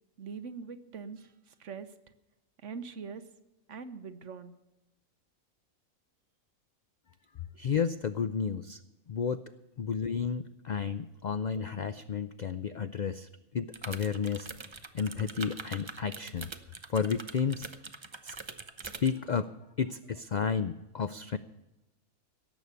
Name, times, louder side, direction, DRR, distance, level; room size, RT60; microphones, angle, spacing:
voice 1, 0.2-1.3 1.6-1.9 2.6-3.2 3.7-4.5, right 5 dB, 60° right, 11 dB, 1.2 m, -42 dB
voice 2, 7.6-8.8 9.1-9.4 9.8-14.5 14.9-16.5 16.9-17.7 18.2-18.4 18.8-19.5 19.8-21.4, left 6 dB, 80° left, 12 dB, 0.4 m, -32 dB
Slower mechanical keyboard typing, 13.7-19.2, right 4 dB, 30° right, 0.6 m, -43 dB
17.5 x 7.1 x 8.2 m, 1.0 s
omnidirectional pair, 1.4 m